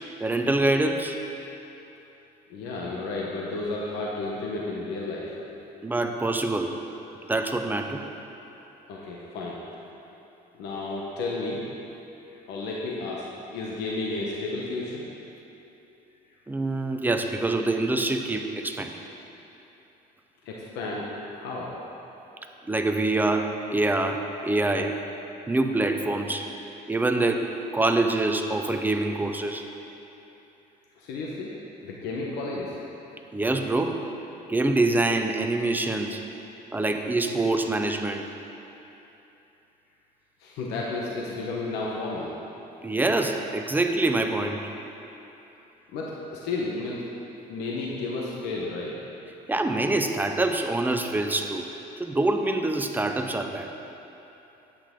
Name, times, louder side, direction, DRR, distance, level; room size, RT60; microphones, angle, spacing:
voice 1, 0.2-1.2 5.8-6.7 7.3-8.0 16.5-19.0 22.7-25.0 25.5-26.5 26.9-29.7 33.3-34.0 34.5-36.2 36.7-38.3 42.8-44.6 49.5-51.7 52.0-53.7, right 2 dB, 10° right, 5 dB, 0.7 m, -25 dB
voice 2, 2.5-5.3 8.9-9.6 10.5-11.7 12.3-15.0 20.4-21.7 31.0-31.5 31.8-32.8 40.4-42.3 45.9-47.0 47.5-48.9, left 3 dB, 90° left, -4 dB, 1.1 m, -32 dB
10.5 x 8.7 x 3.7 m, 3.0 s
cardioid pair, 110°, 17 cm